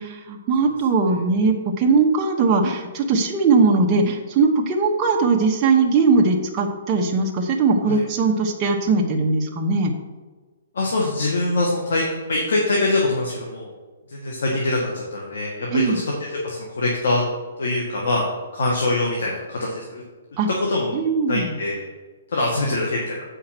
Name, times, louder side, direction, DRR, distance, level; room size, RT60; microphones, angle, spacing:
voice 1, 0.0-9.9 15.7-16.0 20.4-20.5 20.9-21.5, right 4 dB, 20° right, -1 dB, 1.1 m, -20 dB
voice 2, 10.7-13.7 14.1-17.2 17.6-18.3 18.5-20.0 20.7-20.9 21.3-21.8 22.3-23.2, left 2 dB, 80° left, -2 dB, 1.8 m, -23 dB
7.8 x 5.7 x 5.9 m, 1.3 s
hypercardioid pair, 165°, 0 cm